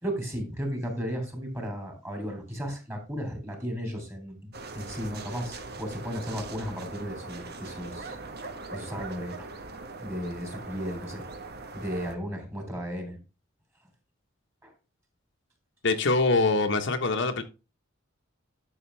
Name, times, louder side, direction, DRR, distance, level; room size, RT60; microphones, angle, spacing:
voice 1, 0.0-8.2 8.7-9.6 10.0-11.2 11.7-13.2 14.6-14.7, equal, 15° right, 3.3 m, -35 dB
sound 1, 4.5-12.2, right 3 dB, 55° right, 1.3 m, -41 dB
voice 2, 15.8-17.4, left 3 dB, 65° left, 1.2 m, -24 dB
11.0 x 6.7 x 3.3 m
head